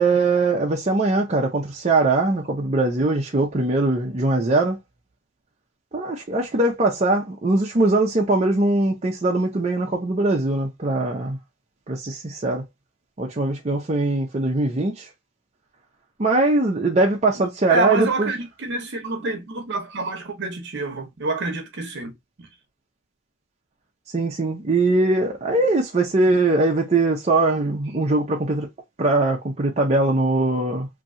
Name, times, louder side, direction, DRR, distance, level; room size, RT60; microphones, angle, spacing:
voice 1, 0.0-4.8 5.9-11.4 11.9-12.6 13.2-15.1 16.2-18.3 24.1-28.7 29.0-30.9, right 2 dB, 30° right, 0.6 m, -21 dB
voice 2, 17.7-22.1 26.3-26.4, right 2 dB, 55° right, 0.9 m, -27 dB
3.0 x 2.7 x 2.5 m
head